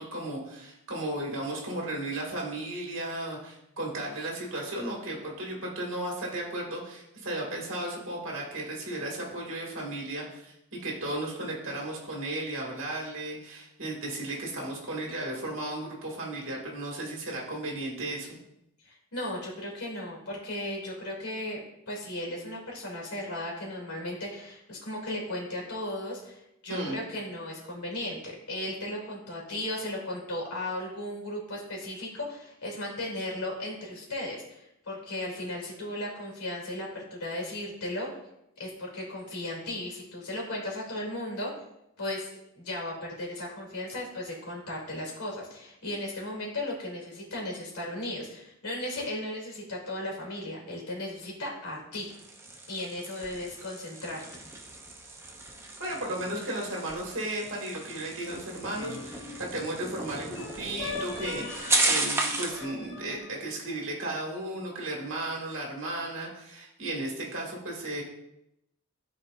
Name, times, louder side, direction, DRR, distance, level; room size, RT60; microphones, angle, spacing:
voice 1, 0.0-18.4 26.7-27.0 55.8-68.0, right 1 dB, 60° right, -2 dB, 2.0 m, -35 dB
voice 2, 18.8-21.6 21.9-38.1 38.6-41.5 42.0-42.3 42.5-52.1 52.7-54.6, left 1 dB, 90° left, -2 dB, 2.8 m, -36 dB
sound 1, 51.9-62.6, right 2 dB, 10° right, 0.6 m, -34 dB
sound 2, 58.7-59.8 60.3-63.7, left 3 dB, 50° left, 0.9 m, -41 dB
12.5 x 4.3 x 2.5 m, 0.84 s
head